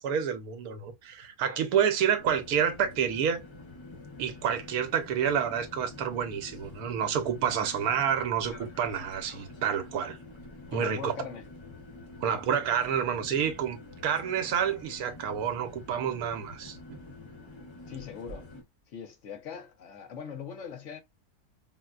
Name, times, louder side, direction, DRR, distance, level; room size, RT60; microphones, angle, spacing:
voice 1, 0.0-3.4 4.2-10.2 10.7-11.1 12.2-13.8 14.0-17.0, right 8 dB, 75° right, 1.2 m, -29 dB
sound 1, 2.2-18.6, left 2 dB, 40° left, 0.4 m, -47 dB
voice 2, 10.7-11.4 17.9-18.5 18.9-21.0, left 7 dB, 60° left, 0.9 m, -41 dB
4.3 x 2.1 x 2.3 m
omnidirectional pair, 1.6 m